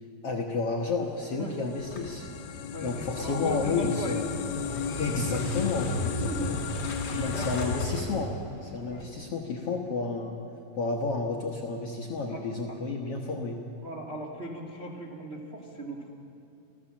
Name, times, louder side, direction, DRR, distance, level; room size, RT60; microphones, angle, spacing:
voice 1, 0.2-2.3 2.8-4.2 5.0-6.6 7.2-8.4 8.6-10.4 10.7-13.6, left 4 dB, 60° left, 0 dB, 1.6 m, -31 dB
sound 1, 1.0-7.9, left 8 dB, 85° left, 2.6 m, -36 dB
Motorcycle / Engine starting, 1.8-9.0, left 1 dB, 35° left, 2.8 m, -35 dB
voice 2, 2.7-4.3 6.2-6.6 7.1-7.7 8.9-9.1 12.3-12.4 13.8-16.2, right 1 dB, 40° right, 0 dB, 0.8 m, -38 dB
27.0 x 16.0 x 7.5 m, 2.6 s
omnidirectional pair, 4.3 m